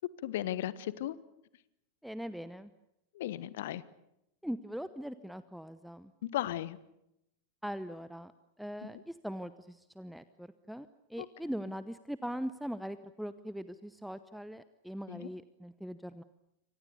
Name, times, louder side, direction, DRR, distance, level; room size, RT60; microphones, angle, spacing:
voice 1, 0.2-1.1 3.1-3.8 6.3-6.8 8.8-8.9 11.2-11.3 15.1-15.3, left 13 dB, 55° left, 18 dB, 1.2 m, -35 dB
voice 2, 2.0-2.7 4.4-6.1 7.6-8.3 8.6-16.2, equal, ahead, 14 dB, 0.9 m, -41 dB
28.0 x 25.0 x 6.9 m, 0.85 s
figure-of-eight pair, 90°, 0 cm